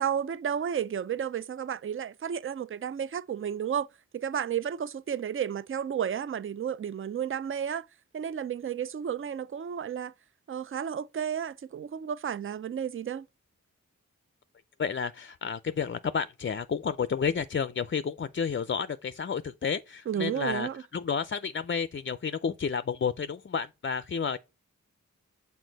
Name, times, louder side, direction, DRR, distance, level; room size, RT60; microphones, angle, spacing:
voice 1, 0.0-3.9 4.1-7.9 8.1-10.1 10.5-13.3 20.1-20.8, right 8 dB, 40° right, 0.4 m, -32 dB
voice 2, 14.8-24.4, left 6 dB, 40° left, 0.4 m, -31 dB
6.4 x 4.2 x 3.9 m
wide cardioid pair, 60°, 33 cm